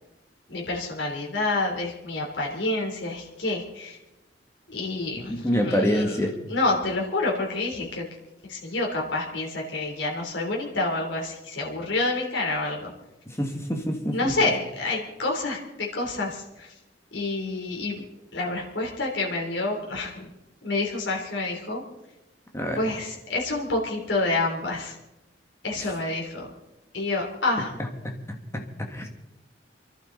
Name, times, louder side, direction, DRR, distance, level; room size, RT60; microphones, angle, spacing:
voice 1, 0.5-4.0 4.7-6.1 6.5-8.0 8.4-12.9 14.1-16.7 17.1-18.0 18.3-20.3 20.6-21.8 22.8-24.9 25.6-26.5 26.9-27.7, left 2 dB, 85° left, -1 dB, 3.4 m, -28 dB
voice 2, 5.3-6.4 13.3-14.3 22.5-22.8 25.8-25.9 28.0-28.1 28.5-29.1, equal, 15° left, 3 dB, 1.8 m, -26 dB
29.0 x 11.5 x 4.0 m, 0.98 s
head